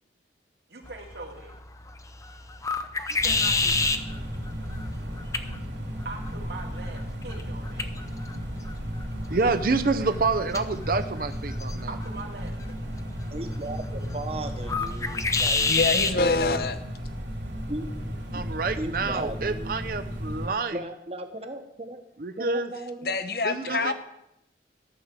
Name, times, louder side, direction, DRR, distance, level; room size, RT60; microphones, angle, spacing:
voice 1, 0.7-1.6 3.1-3.9 6.0-7.9 11.9-12.7 23.6-23.9, right 3 dB, 70° right, 2 dB, 2.2 m, -41 dB
sound 1, 0.8-16.2, left 4 dB, 20° left, 0.6 m, -31 dB
sound 2, 3.2-20.5, equal, 85° right, 3.1 m, -34 dB
voice 2, 9.3-11.9 18.3-20.7 22.2-22.7 23.4-23.9, right 3 dB, 50° right, 9 dB, 0.6 m, -27 dB
voice 3, 13.3-15.7 16.0-16.1 17.7-17.9 18.8-19.7 20.7-22.0 22.4-23.1, right 1 dB, 35° right, 6 dB, 1.2 m, -36 dB
voice 4, 15.7-16.8 23.0-23.9, left 3 dB, 55° left, 10 dB, 1.0 m, -25 dB
13.0 x 6.5 x 8.2 m, 0.81 s
head